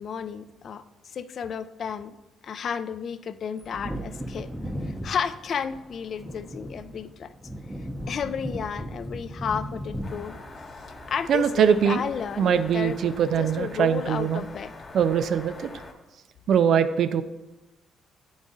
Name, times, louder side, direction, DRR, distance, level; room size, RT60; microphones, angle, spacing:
voice 1, 0.0-2.2 2.4-4.5 4.9-7.3 8.1-10.4 11.1-14.7, left 7 dB, 55° left, 13 dB, 0.4 m, -32 dB
Wind / Thunder, 3.6-11.9 12.2-12.3, equal, 5° right, 0.6 m, -37 dB
sound 1, 10.0-15.9, left 2 dB, 40° left, 1.1 m, -44 dB
voice 2, 11.3-12.0 12.4-14.4 14.9-15.7 16.5-17.2, right 8 dB, 65° right, 12 dB, 0.4 m, -22 dB
9.2 x 4.0 x 3.7 m, 1.1 s
cardioid pair, 90°, 0 cm